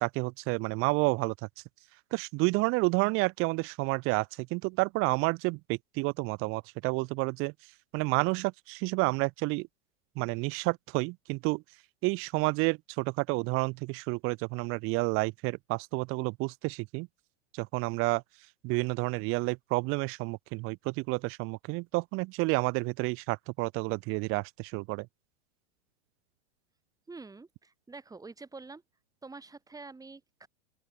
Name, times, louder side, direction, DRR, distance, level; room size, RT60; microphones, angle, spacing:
voice 1, 0.0-1.3 2.1-7.5 7.9-9.7 10.2-11.6 12.0-17.1 17.5-18.2 18.6-25.1, right 26 dB, 40° right, 0.8 m, -30 dB
voice 2, 27.1-28.8 29.2-30.5, right 3 dB, 10° right, 6.9 m, -47 dB
open air
hypercardioid pair, 130°, 34 cm